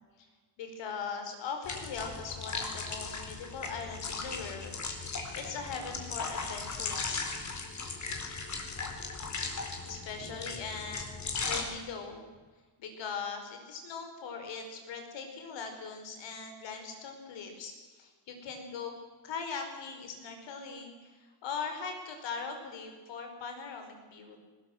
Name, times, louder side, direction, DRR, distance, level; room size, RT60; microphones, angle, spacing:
voice 1, 0.6-4.8 5.0-7.3 9.8-12.3 12.8-18.9 19.2-24.4, left 5 dB, 85° left, 5 dB, 5.3 m, -40 dB
sound 1, 1.6-11.6, left 4 dB, 40° left, 4.3 m, -37 dB
20.0 x 19.5 x 7.9 m, 1.3 s
cardioid pair, 125°, 43 cm